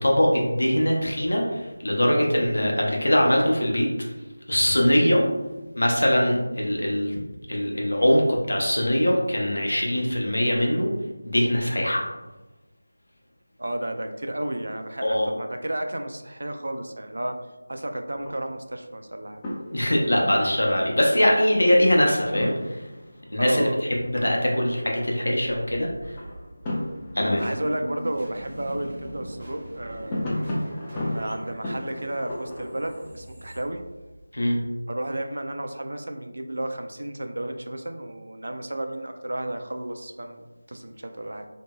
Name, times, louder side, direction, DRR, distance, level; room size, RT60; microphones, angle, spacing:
voice 1, 0.0-3.9 4.5-5.2 5.7-7.2 7.5-10.9 11.2-12.0 15.0-15.3 19.7-22.8 23.3-25.9 27.2-27.4 34.3-34.6, equal, 75° left, -1 dB, 0.7 m, -22 dB
voice 2, 13.6-17.4 17.7-19.4 23.4-23.8 27.4-30.3 30.9-33.8 34.9-41.5, right 1 dB, 70° right, 6 dB, 0.3 m, -32 dB
sound 1, 14.9-15.5 15.8-15.9 16.4-17.1 18.1-18.8 19.3-33.1, left 1 dB, 15° left, 0.4 m, -36 dB
sound 2, 25.7-34.4, equal, 30° right, 0.6 m, -42 dB
2.9 x 2.7 x 2.2 m, 1.1 s
figure-of-eight pair, 165°, 0 cm